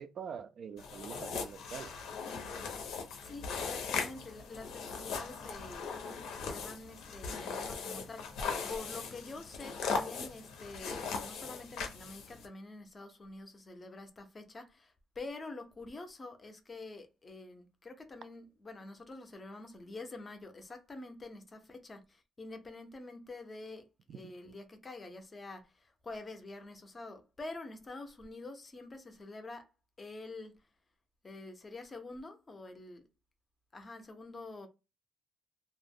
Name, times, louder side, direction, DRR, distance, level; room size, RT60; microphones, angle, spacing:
voice 1, 0.0-1.9 24.1-24.2, right 7 dB, 45° right, 0.3 m, -44 dB
sound 1, 0.8-12.5, left 5 dB, 85° left, 0.6 m, -39 dB
voice 2, 2.9-5.9 6.5-8.4 8.7-23.8 24.1-29.7 30.0-30.7 31.2-33.0 33.7-34.7, left 2 dB, 20° left, 0.5 m, -47 dB
2.4 x 2.0 x 3.5 m
cardioid pair, 160°, 0 cm